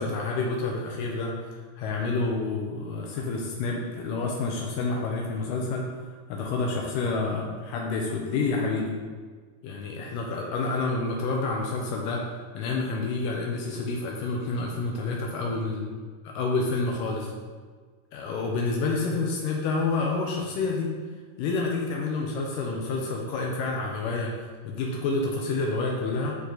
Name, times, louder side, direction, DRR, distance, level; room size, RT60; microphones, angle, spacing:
voice 1, 0.0-5.9 6.3-8.9 9.6-15.8 16.4-17.3 18.1-20.9 21.4-26.4, left 3 dB, 80° left, -1 dB, 2.4 m, -29 dB
11.0 x 3.8 x 4.0 m, 1.5 s
omnidirectional pair, 4.0 m